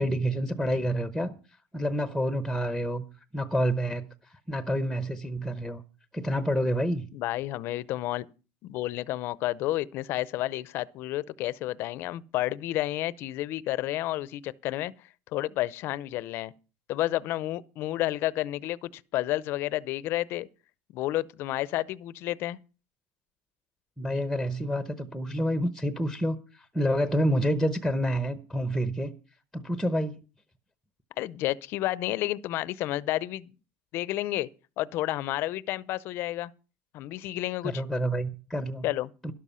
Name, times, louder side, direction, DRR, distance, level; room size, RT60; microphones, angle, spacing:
voice 1, 0.0-1.3 1.7-3.0 3.3-5.8 6.1-7.1 24.0-29.1 29.5-30.2 37.6-38.9 39.2-39.3, equal, ahead, 0.8 m, -28 dB
voice 2, 7.1-8.3 8.6-14.9 15.3-16.5 16.9-20.5 20.9-22.6 31.2-33.5 33.9-34.5 34.8-36.5 36.9-37.7 38.8-39.1, left 15 dB, 50° left, 0.6 m, -30 dB
12.5 x 11.5 x 5.6 m
cardioid pair, 155°, 5 cm